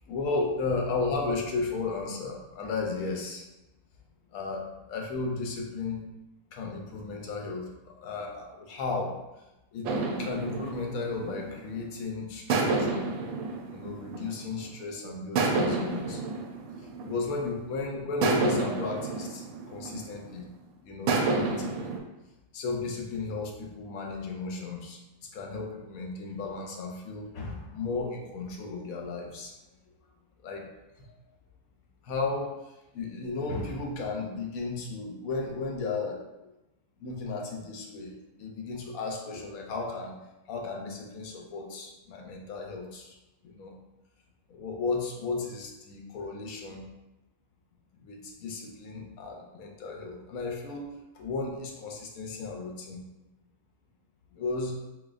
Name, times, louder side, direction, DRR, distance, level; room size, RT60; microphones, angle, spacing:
voice 1, 0.1-3.5 4.3-6.0 6.5-9.2 9.7-9.9 10.2-13.1 13.7-16.2 16.8-20.5 20.8-21.9 22.5-25.0 25.3-29.5 30.4-30.7 31.0-31.1 32.0-32.5 32.9-36.2 37.0-40.2 40.5-43.2 43.4-43.7 44.5-46.8 48.0-50.9 51.1-53.0 54.3-54.9, left 3 dB, 90° left, 1 dB, 1.1 m, -34 dB
sound 1, 9.8-11.9 12.5-14.8 15.4-17.6 18.2-20.4 21.1-22.0, right 3 dB, 85° right, 1.0 m, -30 dB
4.1 x 2.9 x 2.5 m, 0.99 s
omnidirectional pair, 1.5 m